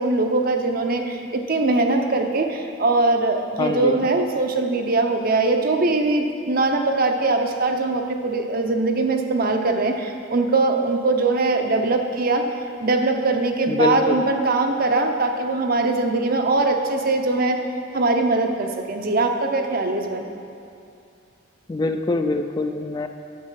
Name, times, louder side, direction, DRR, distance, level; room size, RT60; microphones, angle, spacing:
voice 1, 0.0-12.4 12.8-17.6 17.9-20.3, right 2 dB, 50° right, 4 dB, 0.7 m, -21 dB
voice 2, 3.6-4.1 13.7-14.2 21.7-23.1, left 2 dB, 20° left, 6 dB, 0.3 m, -24 dB
9.4 x 6.6 x 5.7 m, 2.5 s
head